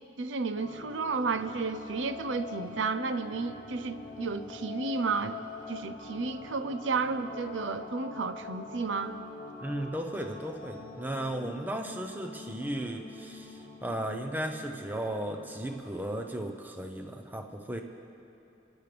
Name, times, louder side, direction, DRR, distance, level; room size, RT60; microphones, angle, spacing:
voice 1, 0.2-5.4 5.7-9.1, right 4 dB, 80° right, 11 dB, 0.6 m, -32 dB
sound 1, 0.5-16.3, left 4 dB, 45° left, 1.1 m, -44 dB
voice 2, 9.6-17.8, right 1 dB, 10° right, 4 dB, 0.7 m, -35 dB
29.5 x 10.5 x 3.4 m, 2.8 s
head